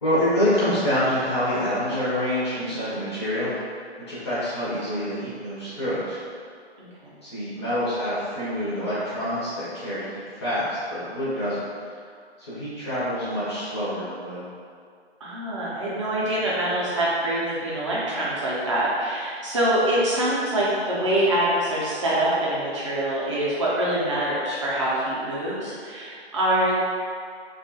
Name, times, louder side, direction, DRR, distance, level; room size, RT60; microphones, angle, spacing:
voice 1, 0.0-3.6 4.1-6.2 7.2-11.6 12.4-14.4, left 1 dB, 25° left, -11 dB, 0.5 m, -26 dB
voice 2, 6.8-7.1 15.2-26.7, right 1 dB, 30° right, -7 dB, 0.5 m, -25 dB
2.5 x 2.3 x 2.5 m, 2.2 s
hypercardioid pair, 150°, 34 cm